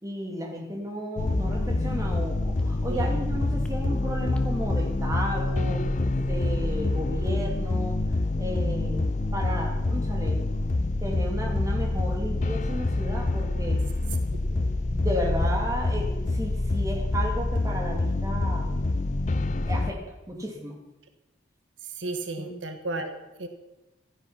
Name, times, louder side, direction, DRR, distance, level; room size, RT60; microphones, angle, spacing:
voice 1, 0.0-5.9 6.2-8.0 8.4-9.0 9.3-10.5 11.0-13.8 14.5-18.8 19.7-20.7 22.4-22.5, equal, 15° right, 0 dB, 2.8 m, -33 dB
sound 1, 1.2-19.9, left 2 dB, 40° left, 0.6 m, -26 dB
sound 2, 1.3-4.0 4.4-6.8, equal, 5° left, 1.2 m, -38 dB
voice 2, 22.0-23.5, right 2 dB, 80° right, 7 dB, 1.5 m, -33 dB
15.5 x 12.5 x 5.8 m, 1.0 s
head